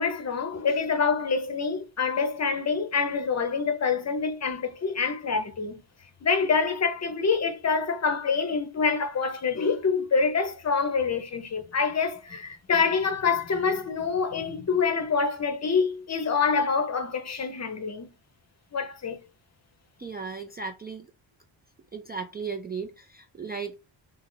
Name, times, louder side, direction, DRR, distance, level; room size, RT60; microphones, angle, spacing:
voice 1, 0.0-5.8 6.2-18.1 18.7-19.2, left 5 dB, 35° left, 0.7 m, -26 dB
voice 2, 20.0-21.1 21.9-23.8, right 5 dB, 25° right, 0.3 m, -36 dB
3.2 x 2.9 x 3.8 m
wide cardioid pair, 140°, 47 cm